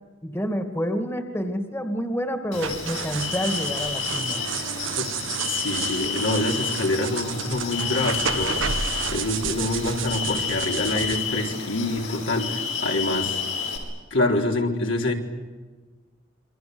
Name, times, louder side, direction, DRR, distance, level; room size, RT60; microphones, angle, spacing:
voice 1, 0.2-4.5, equal, 15° left, 6 dB, 2.3 m, -28 dB
sound 1, 2.5-13.8, left 6 dB, 85° left, 7.1 m, -30 dB
sound 2, 2.5-11.2, right 7 dB, 75° right, 1.2 m, -31 dB
voice 2, 4.8-5.1 5.5-8.6 9.1-13.4 14.1-15.1, left 2 dB, 70° left, 1 dB, 4.0 m, -26 dB
29.0 x 24.0 x 8.0 m, 1.3 s
head